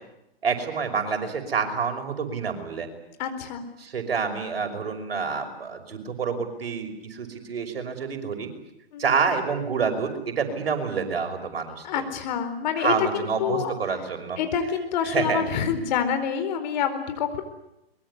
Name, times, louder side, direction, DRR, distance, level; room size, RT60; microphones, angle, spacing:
voice 1, 0.4-2.9 3.8-8.5 9.0-11.9 12.8-14.4 15.1-15.4, right 5 dB, 70° right, 5 dB, 5.8 m, -27 dB
voice 2, 3.2-3.6 8.9-9.1 11.8-13.7 14.4-17.4, left 7 dB, 45° left, 9 dB, 4.5 m, -27 dB
23.5 x 22.0 x 9.9 m, 0.86 s
hypercardioid pair, 125°, 30 cm